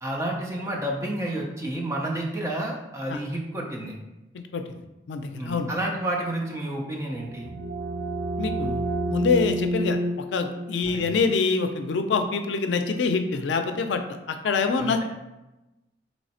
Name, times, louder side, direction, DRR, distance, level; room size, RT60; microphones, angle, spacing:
voice 1, 0.0-3.9 5.4-7.5 10.9-11.1 14.8-15.0, right 1 dB, 15° right, -2 dB, 0.6 m, -30 dB
voice 2, 4.3-5.7 8.4-10.0 10.3-15.0, left 4 dB, 85° left, 7 dB, 0.4 m, -26 dB
sound 1, 7.1-12.6, right 1 dB, 80° right, 0.7 m, -31 dB
3.2 x 3.0 x 4.2 m, 0.98 s
head